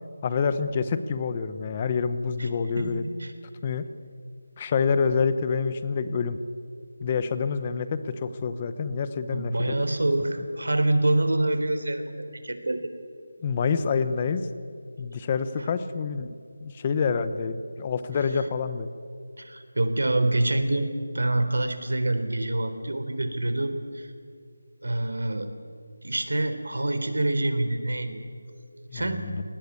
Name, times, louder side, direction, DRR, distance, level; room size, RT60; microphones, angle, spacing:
voice 1, 0.2-3.0 3.6-3.8 4.6-6.4 7.0-9.9 10.4-10.5 13.4-14.5 15.0-16.3 16.6-18.9 28.9-29.4, left 5 dB, 15° left, 12 dB, 0.8 m, -27 dB
voice 2, 2.8-3.3 9.3-12.9 15.6-15.7 19.4-20.9 21.1-24.1 24.8-25.5 26.0-28.2 28.9-29.3, right 2 dB, 85° right, 9 dB, 3.7 m, -26 dB
29.5 x 19.0 x 8.4 m, 2.3 s
figure-of-eight pair, 175°, 0 cm